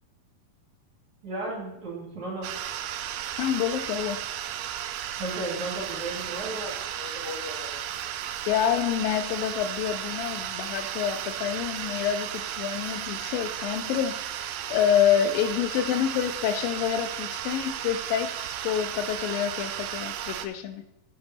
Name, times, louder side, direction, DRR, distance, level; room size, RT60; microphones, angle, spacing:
voice 1, 1.2-2.5 5.2-7.9, right 1 dB, 55° right, -3 dB, 3.4 m, -35 dB
sound 1, 2.4-20.5, right 11 dB, 80° right, 2.1 m, -34 dB
voice 2, 3.4-4.2 8.2-20.8, left 9 dB, 80° left, 10 dB, 2.2 m, -27 dB
8.7 x 5.4 x 5.8 m, 0.91 s
omnidirectional pair, 4.2 m